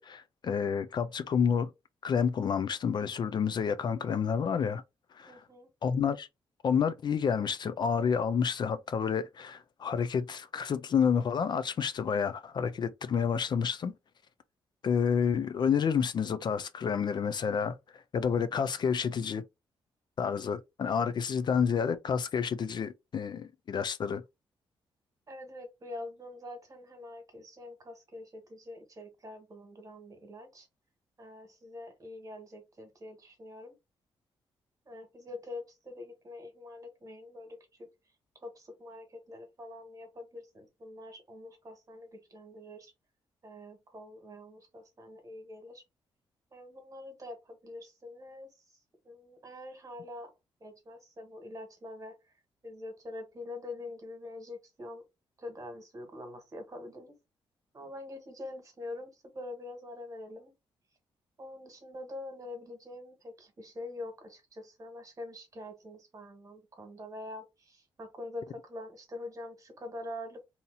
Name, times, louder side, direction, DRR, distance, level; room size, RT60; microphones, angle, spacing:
voice 1, 0.0-1.7 2.0-4.8 5.2-5.4 5.8-6.3 6.6-13.9 14.8-19.4 20.2-24.2, left 7 dB, 50° left, 0.4 m, -29 dB
voice 2, 5.3-5.7 25.3-30.7 31.2-33.7 34.8-37.9 38.4-42.9 43.4-45.8 46.5-48.5 49.0-50.3 50.6-52.1 52.6-55.0 55.4-57.1 57.7-60.5 61.4-70.4, left 2 dB, 35° right, 1.5 m, -45 dB
2.8 x 2.7 x 3.9 m
cardioid pair, 105°, 10 cm